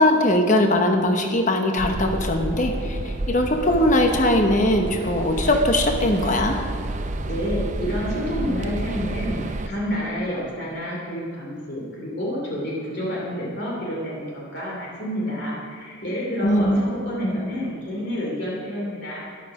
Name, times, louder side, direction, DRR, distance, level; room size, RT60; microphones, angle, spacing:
voice 1, 0.0-6.6 16.4-16.8 17.2-17.4, left 1 dB, 35° left, 4 dB, 1.0 m, -20 dB
sound 1, 1.8-9.7, right 2 dB, 35° right, 0.5 m, -30 dB
voice 2, 7.0-19.5, equal, 50° left, -4 dB, 2.8 m, -29 dB
13.5 x 12.0 x 4.9 m, 2.3 s
head